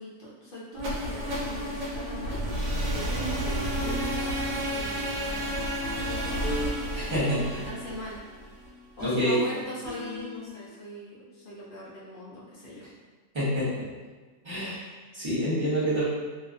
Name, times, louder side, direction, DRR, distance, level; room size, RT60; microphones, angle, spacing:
voice 1, 0.0-5.6 5.8-6.6 7.3-8.2 9.0-12.9, equal, 70° left, -6 dB, 0.5 m, -41 dB
sound 1, 0.7-8.7, equal, 90° right, 1.2 m, -31 dB
sound 2, 3.8-10.7, left 2 dB, 15° left, 0.9 m, -40 dB
voice 2, 6.9-7.6 9.0-9.4 13.3-13.9 14.4-16.0, equal, 30° right, -10 dB, 0.5 m, -27 dB
2.5 x 2.3 x 2.4 m, 1.4 s
omnidirectional pair, 1.7 m